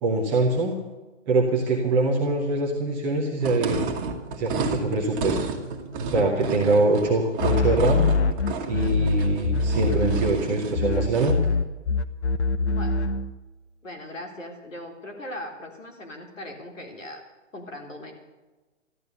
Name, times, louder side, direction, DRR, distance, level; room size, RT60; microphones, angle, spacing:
voice 1, 0.0-0.8 1.3-3.8 4.4-5.4 6.0-8.0 8.7-11.4, right 2 dB, 5° right, -3 dB, 0.4 m, -23 dB
sound 1, 3.4-11.5, right 4 dB, 20° right, 1.5 m, -32 dB
sound 2, 7.4-10.5 10.7-13.3, left 3 dB, 60° left, 1.1 m, -23 dB
voice 2, 12.7-13.1 13.8-17.2 17.5-18.1, left 1 dB, 80° left, 2 dB, 3.8 m, -39 dB
14.0 x 12.0 x 6.7 m, 1.2 s
figure-of-eight pair, 135°, 38 cm